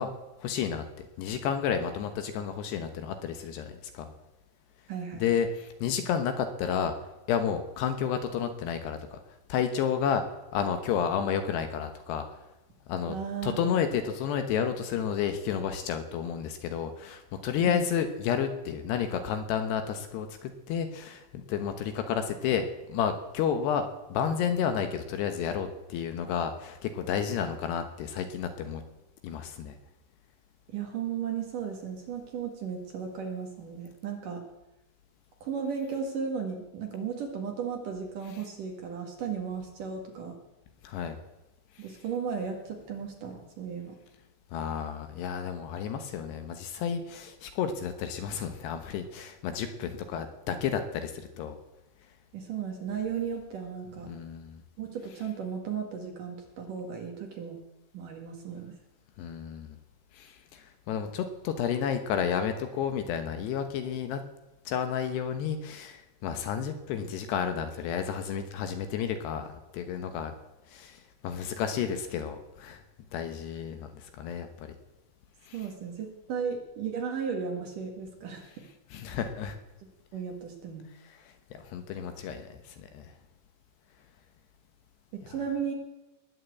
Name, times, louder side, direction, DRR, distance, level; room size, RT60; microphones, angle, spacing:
voice 1, 0.0-4.1 5.1-6.9 7.3-9.2 9.5-10.2 10.5-12.3 12.9-13.2 13.4-28.8 29.2-29.8 40.8-41.2 41.8-41.9 44.5-51.6 54.1-54.6 59.2-59.8 60.1-64.2 64.7-70.3 70.7-72.8 73.1-74.7 75.4-75.6 78.9-79.6 81.1-81.2 81.5-83.1, left 8 dB, 70° left, 7 dB, 3.0 m, -31 dB
voice 2, 4.9-5.3 13.1-13.7 17.7-17.9 30.7-34.4 35.4-40.4 41.8-44.0 52.3-54.1 54.8-57.6 57.9-58.7 75.5-78.6 80.1-80.8 85.1-85.7, right 6 dB, 55° right, 2 dB, 2.8 m, -35 dB
20.5 x 7.6 x 8.3 m, 1.0 s
omnidirectional pair, 5.3 m